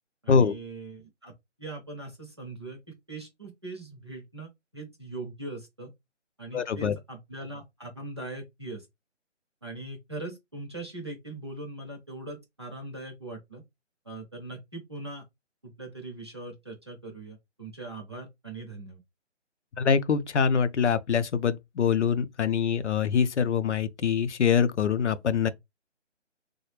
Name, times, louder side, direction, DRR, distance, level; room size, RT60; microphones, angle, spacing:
voice 1, 0.2-1.3 1.6-2.8 3.1-4.5 4.7-5.9 6.4-8.9 9.6-13.6 14.1-15.2 15.6-19.0, right 2 dB, 25° right, 0.5 m, -40 dB
voice 2, 6.5-7.0 19.8-25.5, left 6 dB, 70° left, 0.5 m, -24 dB
3.2 x 2.0 x 3.1 m
figure-of-eight pair, 155°, 36 cm